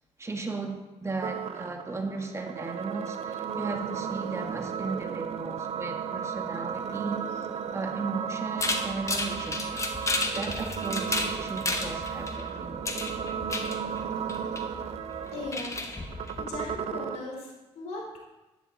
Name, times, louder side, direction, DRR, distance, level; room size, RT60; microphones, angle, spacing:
voice 1, 0.2-7.5 7.7-9.8 10.3-12.8, right 3 dB, 25° right, 3 dB, 1.9 m, -36 dB
sound 1, 1.2-17.2, right 7 dB, 65° right, 0.8 m, -35 dB
sound 2, 8.6-16.8, left 2 dB, 25° left, 1.6 m, -33 dB
voice 2, 15.3-15.8 16.4-18.2, left 3 dB, 75° left, -1 dB, 4.2 m, -38 dB
13.0 x 10.5 x 4.2 m, 1.1 s
cardioid pair, 80°, 12 cm